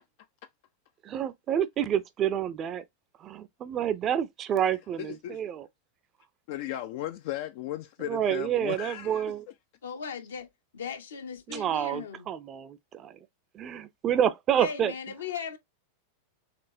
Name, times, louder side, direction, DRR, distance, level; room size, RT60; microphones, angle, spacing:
voice 1, 1.1-2.8 3.2-5.7 8.1-9.4 11.5-13.1 13.5-14.9, right 9 dB, 30° right, 0.5 m, -28 dB
voice 2, 5.0-5.4 6.5-9.3, left 13 dB, 50° left, 0.3 m, -36 dB
voice 3, 9.8-12.3 14.5-15.6, left 6 dB, 65° left, 0.8 m, -38 dB
4.3 x 3.1 x 2.7 m
figure-of-eight pair, 90°, 0 cm